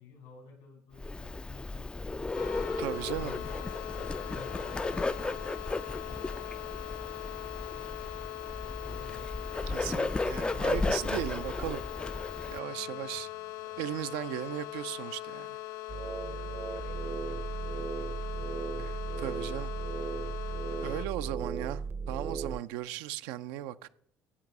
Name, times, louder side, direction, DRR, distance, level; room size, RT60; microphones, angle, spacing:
voice 1, 0.0-2.6 3.1-5.4 6.0-10.1 12.6-13.8 16.2-19.2, left 4 dB, 85° left, 5.3 m, -54 dB
Bird, 1.0-12.6, left 3 dB, 15° left, 0.3 m, -35 dB
sound 1, 2.4-21.1, left 15 dB, 70° left, 0.5 m, -41 dB
voice 2, 2.8-3.3 9.7-11.8 12.5-13.3 13.8-15.6 18.8-18.9 19.2-19.7 20.8-23.9, right 13 dB, 80° right, 0.5 m, -37 dB
sound 2, 15.9-22.6, right 5 dB, 35° right, 0.6 m, -36 dB
15.5 x 5.3 x 6.0 m
supercardioid pair, 70°, 6 cm